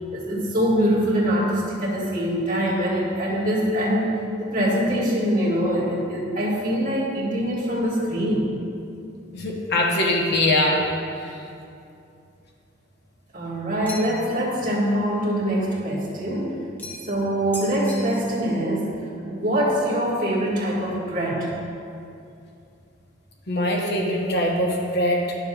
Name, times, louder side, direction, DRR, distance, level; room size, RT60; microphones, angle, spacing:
voice 1, 0.1-4.1 4.4-8.5 13.3-16.6 17.1-18.9 19.3-21.5, equal, 40° right, -7 dB, 1.9 m, -23 dB
voice 2, 9.3-10.8 11.1-11.4 23.5-25.4, left 1 dB, 55° left, -1 dB, 1.0 m, -22 dB
sound 1, 13.9-14.4 16.8-17.2 17.5-18.5, left 1 dB, 10° left, 0.8 m, -38 dB
12.0 x 6.8 x 2.4 m, 2.6 s
head